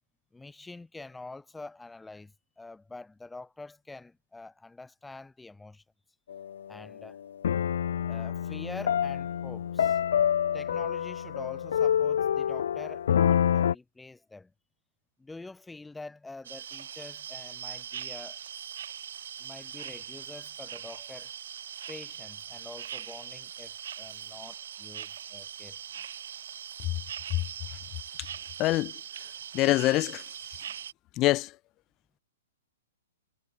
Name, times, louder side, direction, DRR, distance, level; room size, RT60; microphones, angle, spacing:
voice 1, 0.3-5.8 6.7-7.2 8.0-10.0 10.5-14.5 15.2-18.4 19.4-21.3 21.9-26.1, left 3 dB, 5° left, 3.4 m, -46 dB
sound 1, 6.3-6.7 7.4-13.7, left 9 dB, 70° left, 1.0 m, -27 dB
sound 2, 16.4-30.9, right 9 dB, 70° right, 0.9 m, -41 dB
voice 2, 28.6-28.9 29.5-30.2 31.2-31.5, left 18 dB, 30° left, 0.7 m, -24 dB
hypercardioid pair, 140°, 0 cm